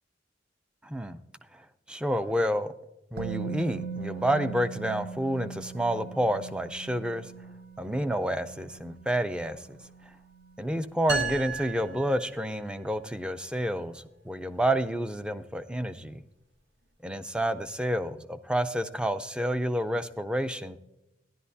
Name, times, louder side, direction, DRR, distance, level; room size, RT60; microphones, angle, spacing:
voice 1, 0.8-1.2 1.9-2.7 3.1-7.3 7.8-9.6 10.6-16.2 17.0-20.8, equal, 5° right, 11 dB, 0.4 m, -29 dB
Musical instrument, 3.2-11.1 11.3-11.5, right 5 dB, 55° right, 0.6 m, -41 dB
sound 1, 11.1-12.9, right 4 dB, 75° right, 1.8 m, -34 dB
13.5 x 11.0 x 2.7 m, 0.93 s
head